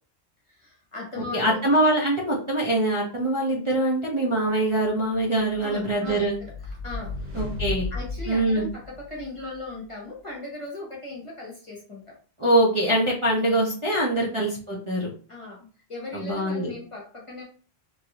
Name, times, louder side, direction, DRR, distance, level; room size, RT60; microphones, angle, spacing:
voice 1, 0.5-1.6 5.6-7.4 7.9-12.2 13.3-13.6 14.1-14.3 15.3-17.4, left 2 dB, 30° left, -3 dB, 1.0 m, -38 dB
voice 2, 1.3-6.4 7.3-7.9 8.3-8.7 12.4-15.1 16.1-16.7, right 1 dB, 35° right, -4 dB, 0.7 m, -23 dB
sound 1, 5.5-9.4, left 3 dB, 60° right, 1.7 m, -34 dB
3.1 x 2.6 x 2.9 m, 0.41 s
omnidirectional pair, 1.1 m